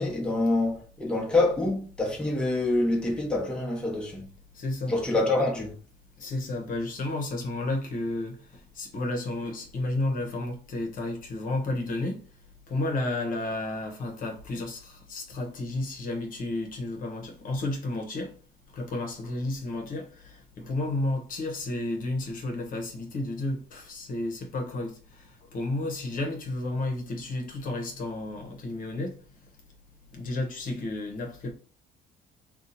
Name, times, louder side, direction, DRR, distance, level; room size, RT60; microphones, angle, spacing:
voice 1, 0.0-4.3 4.9-5.7, left 2 dB, 5° left, 1.0 m, -26 dB
voice 2, 4.5-4.9 5.4-5.5 6.2-8.4 8.7-12.2 12.7-18.3 18.7-29.2 30.1-31.5, left 2 dB, 55° left, 1.0 m, -32 dB
2.7 x 2.4 x 4.1 m
cardioid pair, 110°, 17 cm